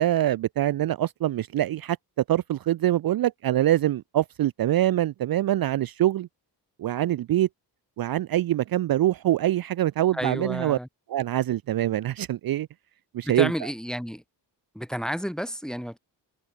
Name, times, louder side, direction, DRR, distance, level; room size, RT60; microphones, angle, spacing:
voice 1, 0.0-2.0 2.3-6.3 6.8-7.5 8.0-10.8 11.1-12.7 13.1-13.5, right 13 dB, 55° right, 0.5 m, -24 dB
voice 2, 10.1-10.9 13.2-14.2 14.7-16.0, equal, ahead, 0.9 m, -31 dB
cardioid pair, 95°, 43 cm